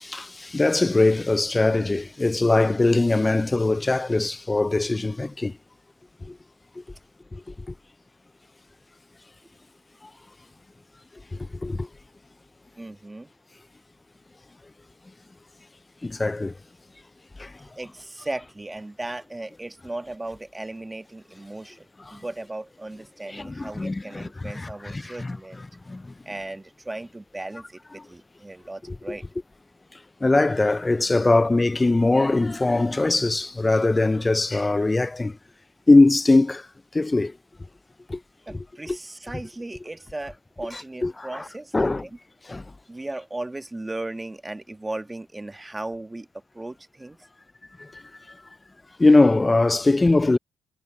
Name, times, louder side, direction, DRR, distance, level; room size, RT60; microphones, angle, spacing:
voice 1, 0.0-5.6 6.2-6.4 6.8-6.9 7.3-7.7 11.4-11.9 16.0-16.5 17.4-17.5 22.1-22.2 23.3-25.4 25.9-26.1 28.9-29.0 29.9-35.4 35.9-36.7 36.9-37.4 38.1-38.2 38.9-39.0 41.0-41.4 41.7-42.0 42.5-42.6 47.8-48.4 49.0-50.4, left 2 dB, 20° left, 0.3 m, -21 dB
voice 2, 12.8-13.3 17.6-25.6 26.2-29.2 38.5-42.1 42.9-46.3 46.5-47.2, right 2 dB, 15° right, 1.4 m, -36 dB
cardioid pair, 90°, 0 cm